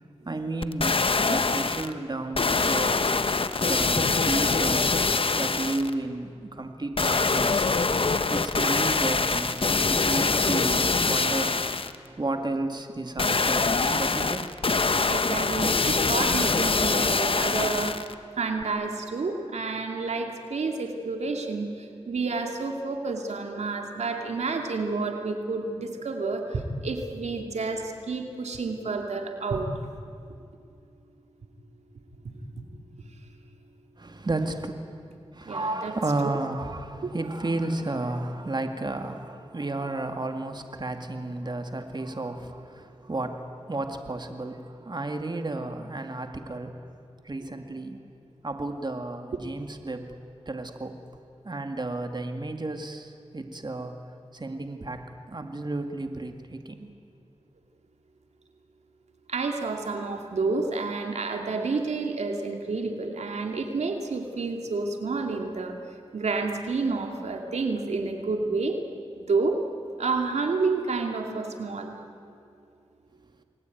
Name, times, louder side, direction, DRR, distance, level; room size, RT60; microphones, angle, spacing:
voice 1, 0.2-3.0 3.6-5.0 5.3-7.7 8.3-11.6 12.2-14.7 34.0-34.7 35.3-46.9 47.2-48.0 48.4-50.2 50.5-51.0 51.4-54.0 54.3-56.9, right 2 dB, 40° right, 6 dB, 2.3 m, -32 dB
sound 1, 0.6-1.9 2.3-5.9 7.0-11.9 13.2-18.1 18.6-18.7, left 4 dB, 55° left, 1.2 m, -24 dB
voice 2, 15.1-18.0 18.4-29.7 35.5-36.0 36.2-36.3 37.0-37.1 59.3-65.7 66.1-68.8 69.2-69.6 70.0-72.0, right 3 dB, 90° right, 3 dB, 2.6 m, -29 dB
29.5 x 21.0 x 9.4 m, 2.4 s
cardioid pair, 45°, 11 cm